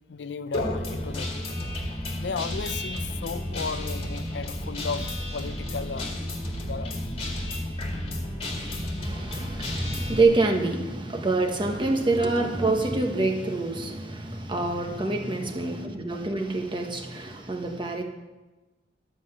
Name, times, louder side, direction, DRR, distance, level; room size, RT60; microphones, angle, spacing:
voice 1, 0.1-1.3 2.2-6.2 6.6-7.0, left 5 dB, 80° left, 0.5 m, -34 dB
Guitar, 0.5-10.2, left 1 dB, 35° left, 1.8 m, -32 dB
voice 2, 9.0-18.0, right 2 dB, 30° right, 1.3 m, -26 dB
12.0 x 5.7 x 8.1 m
head